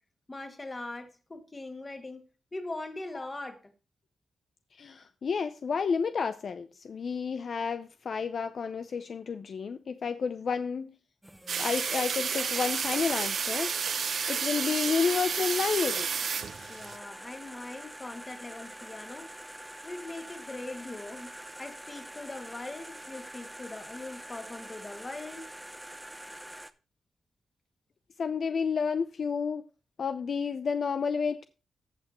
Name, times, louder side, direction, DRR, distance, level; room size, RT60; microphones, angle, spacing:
voice 1, 0.3-2.3 2.5-3.7 16.7-19.3 19.8-25.5, left 2 dB, 25° left, 2.0 m, -41 dB
voice 2, 4.8-10.9 11.5-13.7 14.3-16.1 28.2-29.6 30.0-31.4, left 5 dB, 60° left, 0.6 m, -30 dB
sound 1, 11.2-26.7, right 1 dB, 5° right, 0.7 m, -46 dB
sound 2, 11.5-17.0, right 6 dB, 65° right, 0.8 m, -31 dB
15.0 x 5.9 x 3.0 m
cardioid pair, 105°, 0 cm